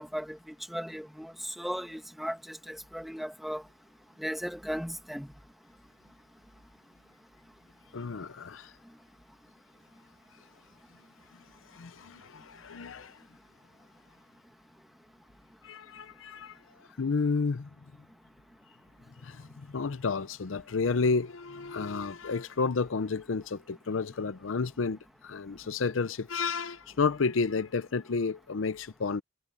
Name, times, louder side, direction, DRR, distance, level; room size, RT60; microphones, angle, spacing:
voice 1, 0.0-3.6 4.2-5.3, equal, ahead, 1.6 m, -37 dB
voice 2, 7.9-8.7 11.7-13.2 15.6-16.6 17.0-17.7 19.2-29.2, left 4 dB, 85° left, 0.6 m, -31 dB
head